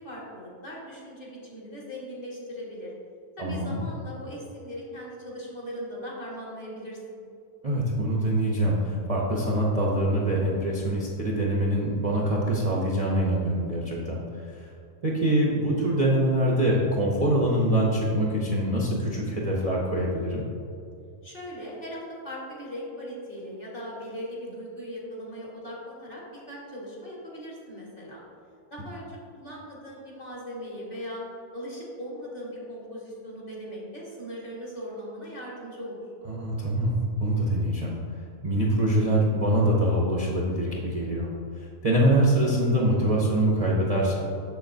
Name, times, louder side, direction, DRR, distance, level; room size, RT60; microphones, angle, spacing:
voice 1, 0.0-2.9 3.4-7.2 21.2-28.2 28.7-31.2 31.5-36.0, equal, 40° left, -5 dB, 1.8 m, -39 dB
voice 2, 3.4-3.8 7.6-14.2 14.6-14.7 15.0-20.4 36.3-37.9 38.4-41.3 41.6-44.2, right 1 dB, 35° right, -4 dB, 0.7 m, -24 dB
7.0 x 6.9 x 2.7 m, 2.6 s
omnidirectional pair, 1.5 m